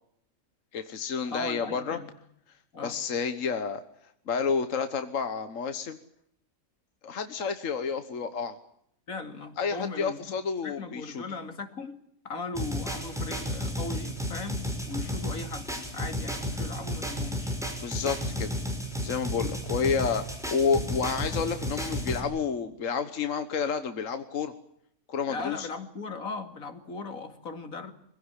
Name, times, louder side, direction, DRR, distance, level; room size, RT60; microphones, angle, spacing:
voice 1, 0.7-2.0 2.8-3.8 4.3-6.0 7.0-8.6 9.6-11.2 17.8-18.5 19.0-24.5 25.1-25.7, left 5 dB, 70° left, 9 dB, 1.6 m, -30 dB
voice 2, 1.3-2.1 2.7-3.0 9.1-10.2 10.6-12.0 12.2-17.6 25.3-27.9, left 3 dB, 90° left, 7 dB, 2.8 m, -38 dB
sound 1, 12.5-22.2, equal, ahead, 5.2 m, -33 dB
24.5 x 16.5 x 9.9 m, 0.73 s
omnidirectional pair, 1.4 m